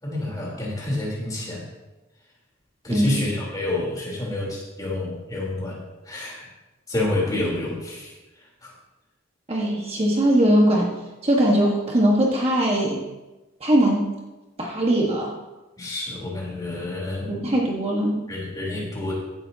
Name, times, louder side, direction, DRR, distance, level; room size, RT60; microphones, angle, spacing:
voice 1, 0.0-1.6 2.8-5.8 6.1-6.5 6.9-8.1 8.6-8.7 15.8-17.3 18.3-19.1, left 2 dB, 20° left, -4 dB, 3.8 m, -28 dB
voice 2, 2.9-3.2 9.5-10.9 11.2-13.0 13.6-14.1 14.6-15.3 17.3-18.2, right 1 dB, 30° right, -2 dB, 1.5 m, -20 dB
16.0 x 11.0 x 2.9 m, 1.1 s
head